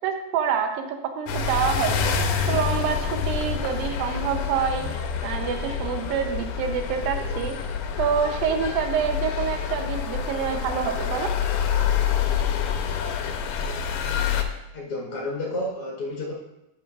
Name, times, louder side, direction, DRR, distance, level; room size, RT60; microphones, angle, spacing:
voice 1, 0.0-2.1 2.5-7.6 8.0-11.3, right 7 dB, 75° right, 5 dB, 2.4 m, -27 dB
sound 1, 1.3-14.4, left 7 dB, 80° left, 2.1 m, -27 dB
voice 2, 14.7-16.3, left 1 dB, 55° left, -3 dB, 1.6 m, -30 dB
11.5 x 7.8 x 2.5 m, 0.92 s
omnidirectional pair, 4.4 m